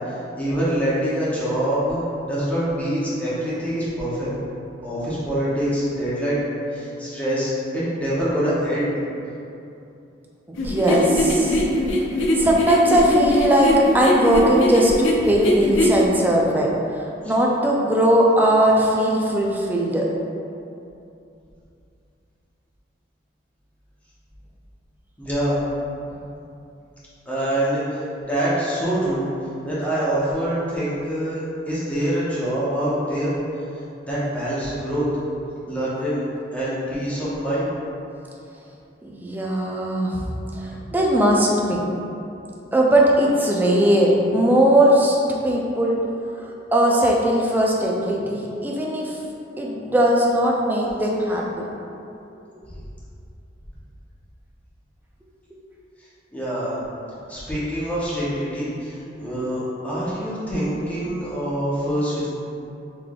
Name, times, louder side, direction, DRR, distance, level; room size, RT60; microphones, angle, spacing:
voice 1, 0.3-2.0 2.3-4.3 4.8-6.4 6.7-8.9 17.2-17.3 25.2-25.6 27.3-29.3 29.6-33.4 34.1-35.1 35.7-36.2 36.5-37.7 56.3-56.8 57.3-62.3, right 1 dB, 10° left, -10 dB, 0.7 m, -25 dB
voice 2, 6.8-7.2 10.5-11.6 12.4-20.0 39.0-40.2 40.5-41.8 42.7-46.0 46.4-49.2 49.5-51.7, right 1 dB, 10° right, -3 dB, 0.3 m, -19 dB
sound 1, 10.6-16.1, left 1 dB, 90° left, 0.4 m, -21 dB
3.7 x 3.2 x 2.3 m, 2.7 s
head